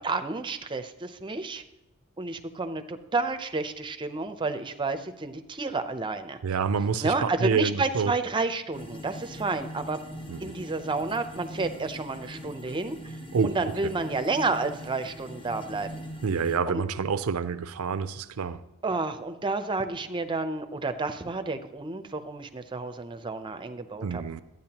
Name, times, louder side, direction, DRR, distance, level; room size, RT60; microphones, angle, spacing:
voice 1, 0.0-1.6 2.2-6.4 7.0-10.0 10.4-13.2 13.4-16.0 16.7-16.9 18.8-24.2, right 3 dB, 20° right, 0.6 m, -30 dB
voice 2, 6.4-8.1 10.3-10.5 13.3-13.6 13.8-13.9 16.2-18.6 24.0-24.4, right 5 dB, 85° right, 0.5 m, -28 dB
sound 1, 8.7-16.6, equal, 25° left, 0.9 m, -42 dB
12.0 x 9.2 x 2.9 m
head